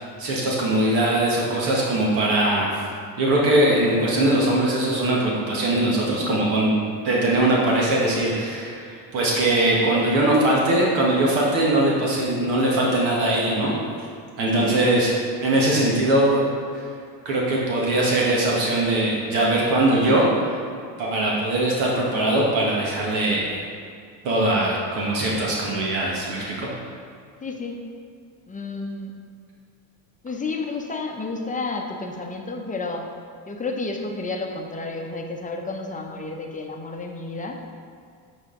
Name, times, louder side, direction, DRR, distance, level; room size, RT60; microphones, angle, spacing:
voice 1, 0.0-2.7 3.2-6.7 7.0-13.7 14.4-15.1 15.4-16.4 16.7-16.8 17.2-20.3 21.0-23.5 24.2-26.7, right 1 dB, 70° right, -3 dB, 1.4 m, -21 dB
voice 2, 14.4-14.8 27.4-27.8 28.5-29.1 30.2-33.1 33.5-37.6, left 3 dB, 15° left, 2 dB, 0.7 m, -31 dB
7.9 x 4.1 x 3.7 m, 2.3 s
supercardioid pair, 85°, 48 cm